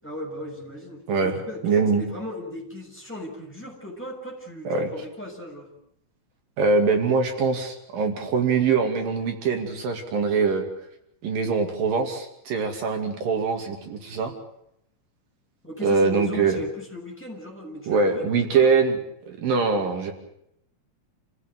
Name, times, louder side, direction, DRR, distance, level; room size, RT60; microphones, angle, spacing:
voice 1, 0.0-5.7 15.6-18.7, left 1 dB, 5° left, 0 dB, 6.2 m, -37 dB
voice 2, 1.6-2.0 4.7-4.9 6.6-10.6 11.2-14.3 15.8-16.6 17.9-19.0 19.3-20.1, right 4 dB, 75° right, 4 dB, 4.2 m, -23 dB
28.5 x 16.0 x 9.0 m, 0.75 s
omnidirectional pair, 4.0 m